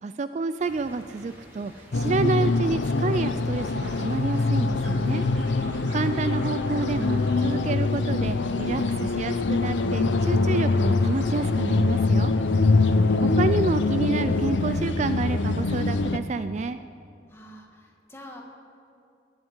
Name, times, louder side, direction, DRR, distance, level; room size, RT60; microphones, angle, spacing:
voice 1, 0.0-5.3 5.9-12.3 13.2-16.8, right 3 dB, 40° right, 11 dB, 0.3 m, -29 dB
sound 1, 0.6-16.1, equal, 10° right, 3.2 m, -50 dB
sound 2, 1.9-16.2, left 3 dB, 85° left, 0.7 m, -24 dB
sound 3, 3.2-4.5 4.8-7.5 7.8-8.5 8.8-9.3, right 2 dB, 70° right, 3.5 m, -47 dB
voice 2, 12.8-13.8 17.3-18.4, equal, 15° left, 0 dB, 2.0 m, -47 dB
21.5 x 8.0 x 8.1 m, 2.5 s
head